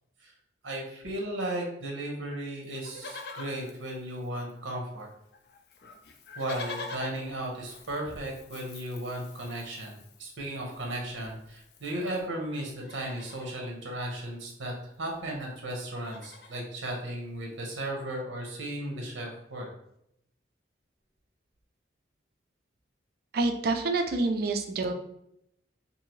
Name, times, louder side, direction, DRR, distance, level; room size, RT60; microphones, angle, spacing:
voice 1, 0.6-5.1 6.4-19.7, right 1 dB, 90° right, 0 dB, 0.8 m, -35 dB
Livestock farm animals working animals, 2.7-4.7 5.0-5.1 5.3-12.3 12.7-13.6 14.8-14.9 15.1-15.4 15.7-16.7 17.3-17.4, left 3 dB, 55° left, 0.4 m, -46 dB
voice 2, 23.3-24.9, right 3 dB, 50° right, 6 dB, 0.3 m, -27 dB
2.7 x 2.6 x 2.9 m, 0.77 s
head